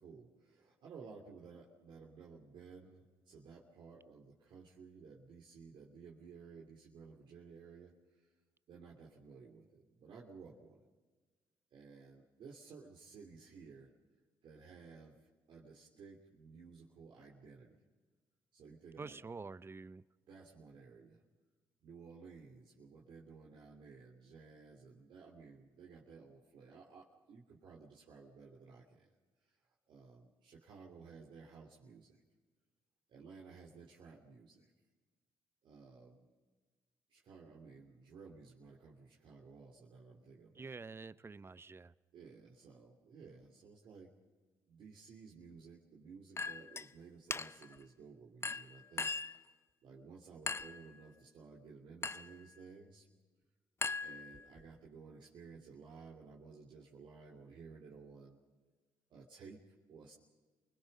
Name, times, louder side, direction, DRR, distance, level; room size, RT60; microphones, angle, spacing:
voice 1, 0.0-8.3 8.7-10.8 11.7-13.9 14.4-17.8 18.5-19.2 20.3-21.2 21.8-29.1 29.4-29.5 29.9-32.2 33.1-34.7 35.6-36.2 37.1-40.7 42.1-44.1 44.7-49.5 49.8-53.1 54.0-58.4 59.1-60.1, right 5 dB, 65° right, 2.9 m, -55 dB
voice 2, 19.0-20.0 40.6-41.9, right 4 dB, 25° right, 0.7 m, -47 dB
Chink clink, 46.4-46.9 47.3-47.7 48.4-49.4 50.5-50.8 52.0-52.4 53.8-54.6, left 4 dB, 30° left, 0.8 m, -39 dB
28.0 x 20.5 x 5.5 m
hypercardioid pair, 55°, 9 cm